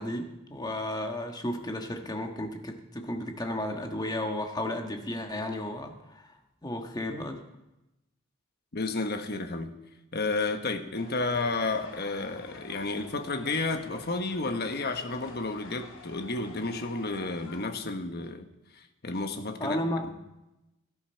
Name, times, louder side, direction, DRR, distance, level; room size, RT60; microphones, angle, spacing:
voice 1, 0.0-6.3 6.6-7.5 19.6-20.1, left 1 dB, 20° left, 4 dB, 1.4 m, -33 dB
voice 2, 8.7-9.8 10.1-18.5 18.7-19.8, left 3 dB, 50° left, 7 dB, 1.2 m, -31 dB
sound 1, 10.9-17.6, left 3 dB, 75° left, 2.9 m, -48 dB
17.0 x 12.5 x 4.5 m, 0.95 s
head